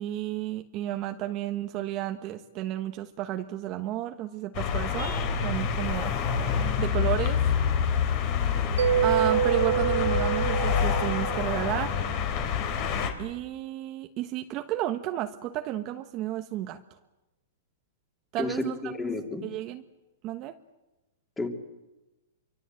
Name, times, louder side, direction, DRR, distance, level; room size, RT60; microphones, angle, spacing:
voice 1, 0.0-5.1 5.4-6.1 6.8-7.4 9.0-12.1 13.2-16.8 18.3-18.9 19.4-19.8 20.2-20.5, right 13 dB, 30° right, 6 dB, 1.2 m, -32 dB
sound 1, 4.5-13.1, left 7 dB, 40° left, 3.6 m, -27 dB
Mallet percussion, 8.8-12.2, right 9 dB, 85° right, 1.0 m, -27 dB
voice 2, 18.4-19.4 21.4-21.5, left 3 dB, 10° left, 3 dB, 3.0 m, -31 dB
27.5 x 24.5 x 7.8 m, 1.1 s
hypercardioid pair, 150°, 0 cm